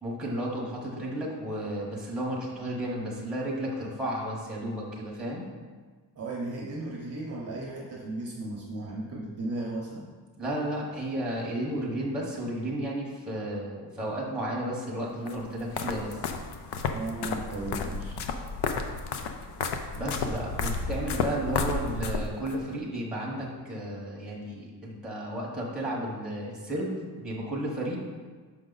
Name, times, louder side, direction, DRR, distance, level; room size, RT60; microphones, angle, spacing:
voice 1, 0.0-5.5 10.4-16.2 19.9-28.0, right 1 dB, ahead, -4 dB, 1.1 m, -33 dB
voice 2, 6.2-10.1 16.9-18.2, right 2 dB, 35° right, -3 dB, 0.8 m, -35 dB
sound 1, 15.3-22.6, left 4 dB, 65° left, 0.6 m, -32 dB
6.3 x 4.8 x 3.9 m, 1.5 s
wide cardioid pair, 175°, 43 cm